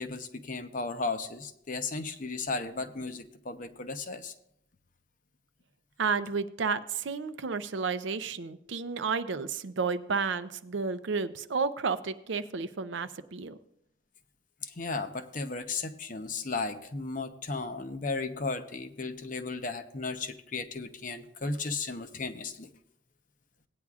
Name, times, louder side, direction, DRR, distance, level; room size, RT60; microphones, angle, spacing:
voice 1, 0.0-4.3 14.6-22.7, left 3 dB, 40° left, 8 dB, 0.7 m, -35 dB
voice 2, 6.0-13.6, right 5 dB, 70° right, 12 dB, 0.5 m, -31 dB
18.0 x 9.4 x 2.4 m, 0.76 s
head